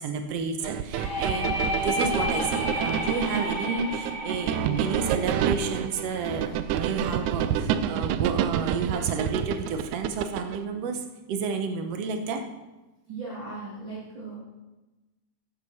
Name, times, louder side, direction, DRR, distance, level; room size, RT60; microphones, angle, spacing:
voice 1, 0.0-12.5, right 4 dB, 70° right, 6 dB, 1.6 m, -31 dB
sound 1, 0.6-10.6, right 9 dB, 85° right, 1.7 m, -28 dB
sound 2, 0.9-6.6, left 1 dB, 30° left, 1.9 m, -32 dB
voice 2, 13.1-14.4, right 3 dB, 35° right, -8 dB, 3.2 m, -37 dB
12.0 x 9.4 x 4.3 m, 1.1 s
omnidirectional pair, 3.9 m